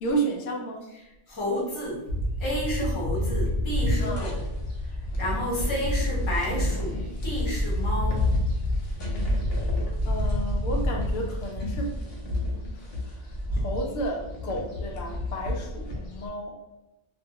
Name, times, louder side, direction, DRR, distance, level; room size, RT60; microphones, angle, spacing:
voice 1, 0.0-0.9 4.0-4.3 10.0-12.0 12.7-16.6, right 2 dB, 90° left, 0 dB, 0.9 m, -32 dB
voice 2, 0.9-2.1 2.4-4.4 5.2-8.3, equal, 25° left, -5 dB, 0.8 m, -31 dB
sound 1, 2.1-16.3, left 1 dB, 60° left, 0.8 m, -28 dB
2.5 x 2.3 x 2.7 m, 0.94 s
omnidirectional pair, 1.2 m